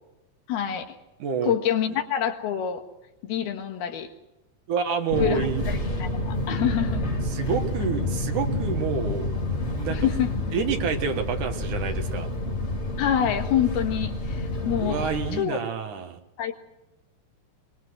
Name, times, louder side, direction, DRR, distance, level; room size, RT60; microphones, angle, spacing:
voice 1, 0.5-1.0 1.5-2.9 3.2-4.1 5.2-7.1 7.8-7.9 9.9-10.3 13.0-15.0 15.3-15.6 16.4-16.6, left 9 dB, 70° left, 5 dB, 3.5 m, -26 dB
voice 2, 1.2-1.5 4.7-5.6 7.3-9.3 9.7-10.0 10.5-12.3 14.8-16.2, right 6 dB, 60° right, 5 dB, 2.6 m, -28 dB
Fixed-wing aircraft airplane, 5.1-15.4, left 1 dB, 30° left, 1.2 m, -29 dB
24.0 x 21.5 x 6.3 m, 0.92 s
omnidirectional pair, 4.8 m